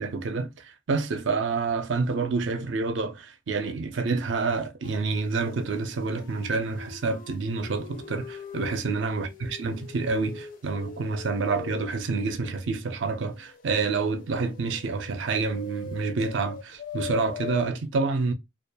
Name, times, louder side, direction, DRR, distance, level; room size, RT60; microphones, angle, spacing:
voice 1, 0.0-18.3, right 4 dB, 70° right, 0.5 m, -28 dB
sound 1, 4.8-4.9 5.3-8.7 9.0-11.8 12.2-17.6, left 6 dB, 45° left, 0.4 m, -42 dB
2.3 x 2.2 x 2.5 m
head